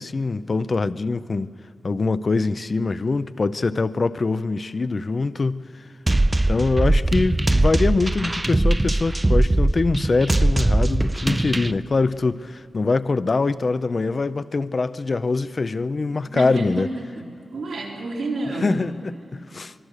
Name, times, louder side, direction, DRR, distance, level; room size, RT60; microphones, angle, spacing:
voice 1, 0.0-1.5 1.8-5.8 6.5-16.9 18.6-19.7, left 3 dB, 45° left, 0.5 m, -23 dB
sound 1, 6.1-11.7, right 2 dB, 20° right, 0.4 m, -20 dB
voice 2, 16.3-18.9, right 2 dB, 90° right, 4.1 m, -30 dB
25.0 x 20.5 x 6.5 m
wide cardioid pair, 100°, 0 cm